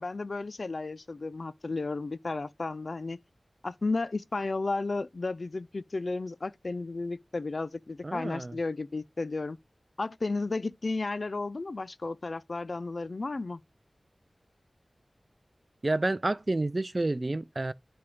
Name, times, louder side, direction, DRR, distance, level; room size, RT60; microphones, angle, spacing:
voice 1, 0.0-3.2 3.6-9.6 10.0-13.6, left 3 dB, 60° left, 0.4 m, -33 dB
voice 2, 8.0-8.6 15.8-17.7, right 2 dB, 40° right, 0.4 m, -29 dB
6.8 x 3.4 x 5.2 m
wide cardioid pair, 75°, 0 cm